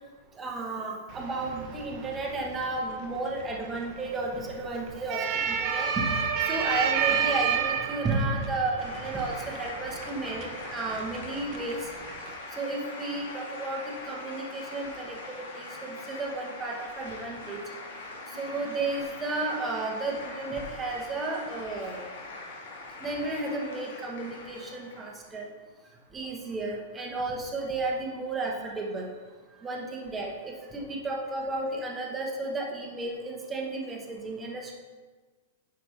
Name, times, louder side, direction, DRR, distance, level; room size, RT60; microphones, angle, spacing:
voice 1, 0.4-6.1 6.5-11.9 12.6-17.6 18.3-22.0 23.0-25.5 26.1-29.1 29.6-34.7, right 2 dB, 10° right, -1 dB, 1.0 m, -33 dB
sound 1, 1.1-12.3, right 7 dB, 30° right, 0.7 m, -32 dB
sound 2, 8.8-25.3, left 2 dB, 80° left, 1.9 m, -42 dB
10.0 x 5.9 x 3.2 m, 1.4 s
supercardioid pair, 170°, 0 cm